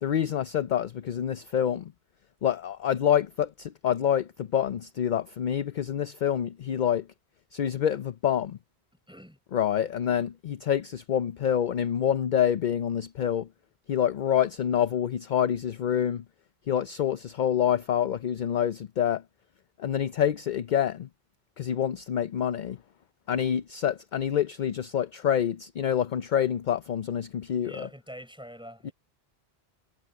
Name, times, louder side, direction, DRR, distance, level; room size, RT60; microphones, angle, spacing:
voice 1, 0.0-1.9 2.4-7.1 7.5-8.6 9.5-13.5 13.9-16.2 16.7-19.2 19.8-21.1 21.6-22.8 23.3-27.9 28.8-28.9, left 9 dB, 55° left, 0.6 m, -27 dB
voice 2, 9.1-9.4 27.6-28.9, equal, 5° right, 5.2 m, -45 dB
omnidirectional pair, 1.1 m